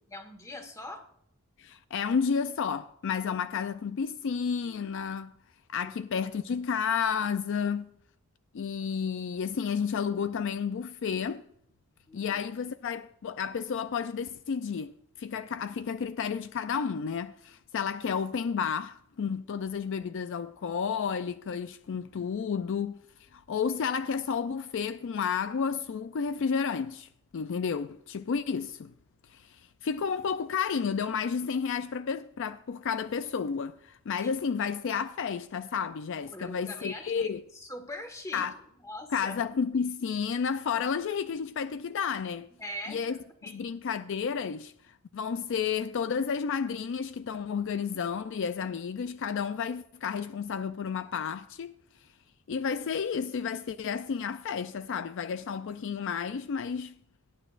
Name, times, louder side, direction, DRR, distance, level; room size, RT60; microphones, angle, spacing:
voice 1, 0.1-1.1 5.8-5.9 12.1-12.4 34.2-34.3 36.3-38.4 38.8-39.3 42.6-43.6, left 1 dB, 15° left, 1.6 m, -42 dB
voice 2, 1.6-5.3 5.7-7.9 8.5-11.4 12.1-14.9 15.2-28.9 29.3-37.4 38.3-38.6 39.1-42.5 42.9-43.1 43.5-51.7 52.5-56.9, left 6 dB, 60° left, 0.4 m, -31 dB
17.5 x 10.0 x 2.5 m
head